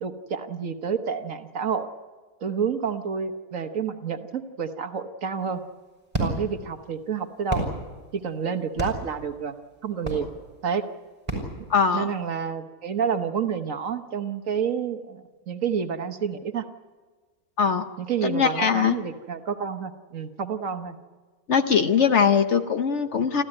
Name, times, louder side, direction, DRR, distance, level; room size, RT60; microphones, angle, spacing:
voice 1, 0.0-1.9 2.4-5.6 6.2-7.7 8.1-9.6 9.8-10.3 10.6-10.8 11.9-16.6 18.0-21.0, right 6 dB, 60° right, 8 dB, 1.4 m, -29 dB
sound 1, 5.4-12.3, right 1 dB, 20° right, 5.5 m, -34 dB
voice 2, 11.7-12.1 17.6-17.9 18.2-19.0 21.5-23.4, left 6 dB, 50° left, 8 dB, 1.1 m, -21 dB
26.0 x 14.5 x 9.8 m, 1.4 s
omnidirectional pair, 1.6 m